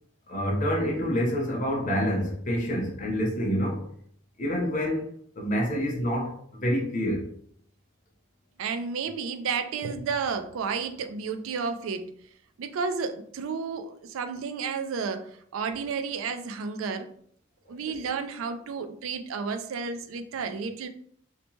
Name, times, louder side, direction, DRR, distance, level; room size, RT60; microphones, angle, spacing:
voice 1, 0.3-3.8 4.4-5.1 5.4-7.3, equal, 40° left, 0.6 m, -27 dB
voice 2, 8.6-12.1 12.6-17.1 17.7-20.9, right 5 dB, 85° right, 0.3 m, -32 dB
2.7 x 2.1 x 3.0 m
head